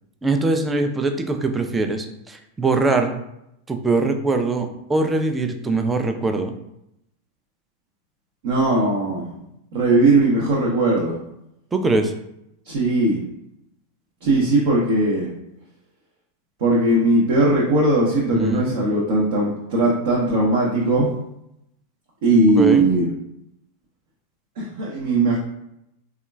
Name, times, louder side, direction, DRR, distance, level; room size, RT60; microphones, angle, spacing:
voice 1, 0.2-3.2 3.7-6.5 11.7-12.1 18.3-18.7 22.6-22.8, right 3 dB, 15° right, 5 dB, 0.3 m, -22 dB
voice 2, 8.4-9.2 9.7-11.1 12.7-13.2 14.2-15.3 16.6-21.1 22.2-23.1 24.6-25.4, right 2 dB, 55° right, -4 dB, 0.6 m, -19 dB
3.6 x 2.3 x 2.2 m, 0.81 s
figure-of-eight pair, 90°, 0 cm